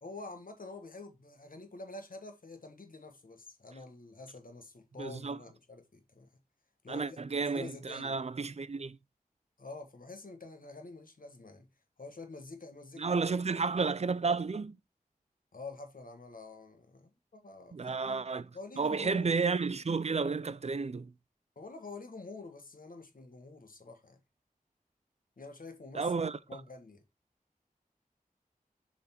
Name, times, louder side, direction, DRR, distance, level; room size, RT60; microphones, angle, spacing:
voice 1, 0.0-6.3 6.8-7.2 7.5-8.2 9.6-11.7 12.0-13.2 15.5-18.2 18.5-19.3 21.5-24.2 25.4-27.0, left 3 dB, 70° left, 1.4 m, -47 dB
voice 2, 5.0-5.4 6.9-9.0 13.0-14.8 17.7-18.5 18.8-21.1 25.9-26.4, right 4 dB, 45° right, 0.5 m, -32 dB
7.0 x 3.8 x 4.3 m
wide cardioid pair, 65°, 15 cm